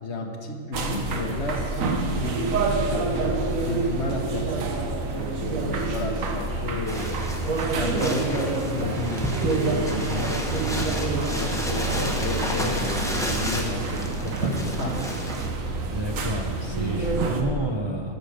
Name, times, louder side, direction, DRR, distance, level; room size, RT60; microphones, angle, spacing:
voice 1, 0.0-3.1 3.5-4.7 5.1-7.1 7.7-15.0, left 2 dB, 60° left, 3 dB, 1.4 m, -32 dB
sound 1, 0.7-17.4, right 3 dB, 85° right, 1.4 m, -27 dB
sound 2, 6.9-15.5, left 1 dB, 5° left, 1.0 m, -32 dB
voice 2, 15.9-18.1, right 2 dB, 30° right, 1 dB, 0.5 m, -30 dB
12.0 x 6.8 x 6.5 m, 2.4 s
omnidirectional pair, 1.4 m